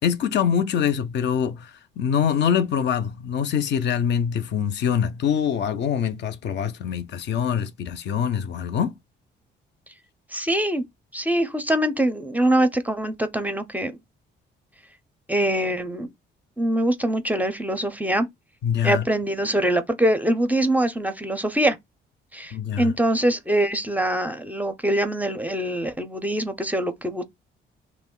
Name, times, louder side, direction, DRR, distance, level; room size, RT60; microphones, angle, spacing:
voice 1, 0.0-9.0 18.6-19.1 22.5-22.9, left 8 dB, 60° left, 0.5 m, -24 dB
voice 2, 10.3-10.8 11.1-13.9 15.3-16.1 16.6-18.3 18.8-21.8 22.3-27.2, right 1 dB, 10° right, 0.4 m, -23 dB
2.4 x 2.1 x 3.7 m
cardioid pair, 90°, 20 cm